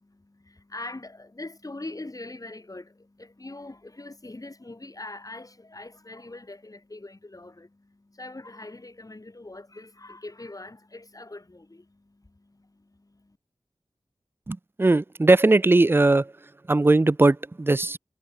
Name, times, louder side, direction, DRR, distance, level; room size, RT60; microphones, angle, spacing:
voice 1, 0.0-13.4, left 2 dB, 40° left, 5.0 m, -42 dB
voice 2, 14.5-16.3 16.7-18.0, right 2 dB, 25° right, 0.4 m, -19 dB
wide cardioid pair, 55°, 10 cm